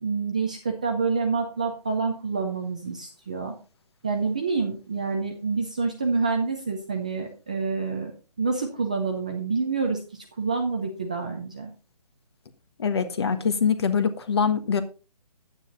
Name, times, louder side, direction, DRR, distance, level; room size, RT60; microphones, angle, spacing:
voice 1, 0.0-3.6 4.0-8.1 8.4-11.7, right 4 dB, 10° right, 2 dB, 0.5 m, -27 dB
voice 2, 12.8-14.8, left 6 dB, 40° left, 11 dB, 1.4 m, -24 dB
9.7 x 9.2 x 4.0 m, 0.33 s
hypercardioid pair, 175°, 20 cm